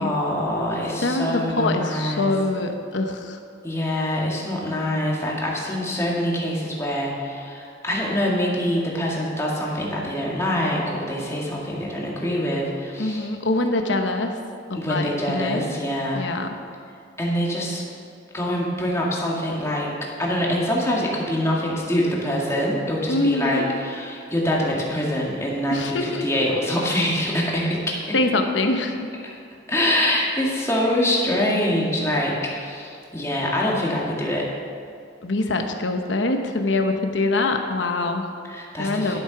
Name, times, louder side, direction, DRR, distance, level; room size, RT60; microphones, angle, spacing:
voice 1, 0.0-2.3 3.6-13.3 14.7-16.2 17.2-17.8 18.3-19.9 20.2-28.1 29.7-34.5 38.5-39.2, left 1 dB, 15° left, -4 dB, 2.1 m, -24 dB
voice 2, 1.0-3.4 13.0-14.4 14.7-15.7 16.1-16.6 23.1-23.6 25.7-26.3 28.1-28.9 35.2-38.3 38.8-39.2, left 2 dB, 75° left, 5 dB, 1.0 m, -24 dB
12.5 x 8.1 x 5.9 m, 2.4 s
head